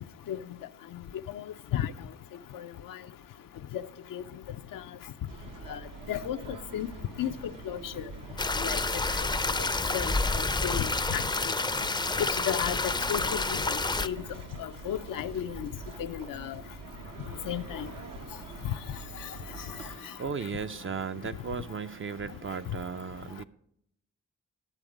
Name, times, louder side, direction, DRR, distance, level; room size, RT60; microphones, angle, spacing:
voice 1, 2.5-3.0 3.7-3.8 4.1-4.2 4.7-4.8 5.7-5.8 6.1-6.4 6.7-6.9 7.2-7.3 7.7-8.0 8.6-8.8 9.9-10.1 10.6-11.2 12.5-12.8 13.1-13.7 14.0-14.2 14.6-15.7 16.0-16.6 17.5-17.9, left 10 dB, 80° left, 0.5 m, -33 dB
sound 1, 5.3-20.0, right 4 dB, 75° right, 1.1 m, -45 dB
sound 2, 8.4-14.1, left 3 dB, 15° left, 0.4 m, -29 dB
voice 2, 19.4-23.4, right 5 dB, 40° right, 0.5 m, -36 dB
11.0 x 7.0 x 5.0 m
cardioid pair, 50°, 33 cm